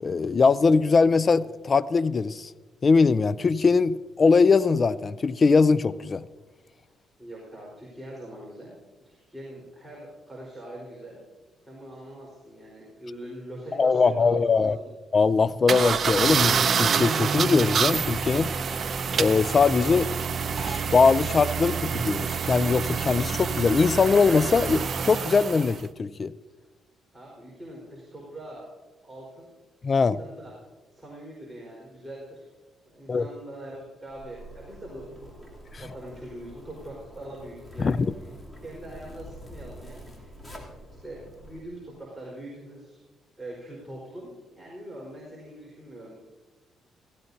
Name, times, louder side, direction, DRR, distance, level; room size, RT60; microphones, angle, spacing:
voice 1, 0.0-2.5 2.8-6.2 13.8-14.8 15.1-18.5 19.2-20.1 20.5-26.3 29.8-30.2 33.1-33.3 37.8-38.0, left 4 dB, 40° left, 17 dB, 0.4 m, -21 dB
voice 2, 7.2-8.8 9.0-11.2 11.6-14.9 27.1-28.7 29.0-29.5 30.0-30.5 30.9-32.5 32.8-38.1 38.5-40.3 41.0-43.0 43.4-46.1, right 1 dB, 10° right, -5 dB, 4.5 m, -43 dB
sound 1, 15.7-25.8, right 6 dB, 50° right, 0.6 m, -27 dB
Zipper (clothing), 34.1-41.6, equal, 15° left, 3.1 m, -46 dB
16.5 x 16.5 x 2.8 m, 1.2 s
cardioid pair, 90°, 0 cm